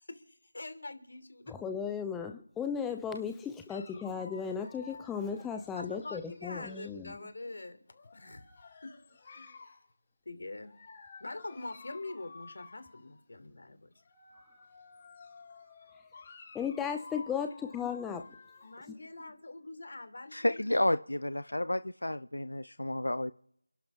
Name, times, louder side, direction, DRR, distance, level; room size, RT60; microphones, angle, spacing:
voice 1, 0.0-1.5 3.7-3.8 5.8-7.8 8.1-8.4 9.3-9.6 10.2-10.7 11.2-13.9 18.6-20.7, left 2 dB, 60° left, 9 dB, 3.0 m, -44 dB
voice 2, 1.5-7.2 16.5-18.2, left 7 dB, 5° left, 5 dB, 0.5 m, -36 dB
Dog, 3.7-7.1 7.9-9.9 10.6-13.3 13.9-18.8, left 4 dB, 25° left, 5.9 m, -53 dB
voice 3, 20.3-23.3, left 1 dB, 85° left, 13 dB, 0.6 m, -31 dB
29.5 x 11.5 x 3.6 m, 0.75 s
figure-of-eight pair, 170°, 0 cm